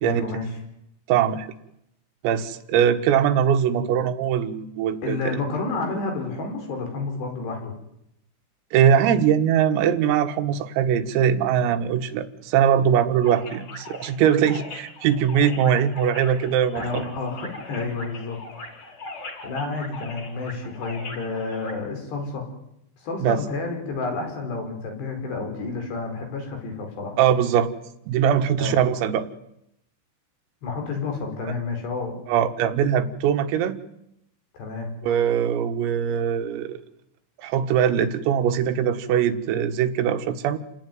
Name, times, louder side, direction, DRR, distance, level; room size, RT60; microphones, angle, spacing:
voice 1, 0.0-0.5 5.0-7.7 16.7-18.4 18.8-19.0 19.4-22.5 23.0-27.2 28.6-28.8 30.6-32.2 34.5-34.9, left 3 dB, 55° left, 3 dB, 7.2 m, -30 dB
voice 2, 1.1-1.5 2.2-5.4 8.7-17.0 23.2-23.4 27.2-27.7 28.1-29.3 32.3-33.8 35.0-36.8 37.4-40.6, right 8 dB, 85° right, 8 dB, 4.1 m, -21 dB
sound 1, 13.2-21.7, left 2 dB, 25° left, 5.4 m, -40 dB
29.5 x 19.0 x 9.5 m, 0.81 s
omnidirectional pair, 5.9 m